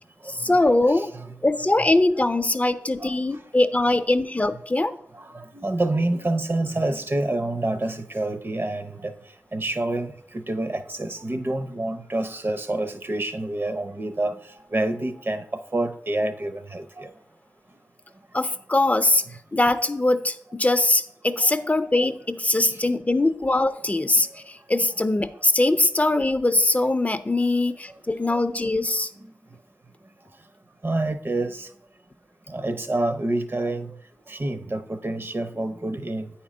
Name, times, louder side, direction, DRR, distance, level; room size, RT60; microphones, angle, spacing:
voice 1, 0.3-1.1 1.4-4.9 18.3-19.2 19.5-29.1, left 2 dB, 30° left, 0.4 m, -22 dB
voice 2, 0.9-1.3 1.8-1.9 3.0-3.1 5.1-9.1 9.5-14.3 14.7-15.5 15.7-17.1 21.4-21.5 30.8-31.7 32.5-34.0 34.3-36.3, right 2 dB, 45° right, 0.6 m, -27 dB
8.9 x 4.3 x 5.0 m
wide cardioid pair, 65°, 5 cm